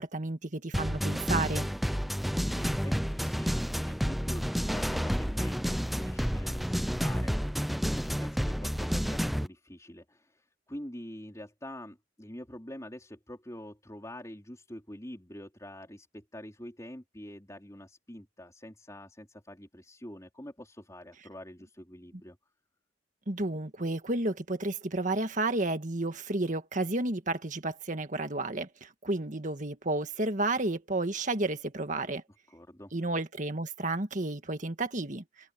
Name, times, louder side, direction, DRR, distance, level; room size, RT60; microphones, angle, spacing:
voice 1, 0.0-1.7 23.3-32.2 32.9-35.2, right 2 dB, 40° right, 1.7 m, -31 dB
sound 1, 0.7-9.5, equal, ahead, 0.6 m, -30 dB
voice 2, 2.5-22.4 32.5-32.9, left 1 dB, 15° left, 4.5 m, -46 dB
head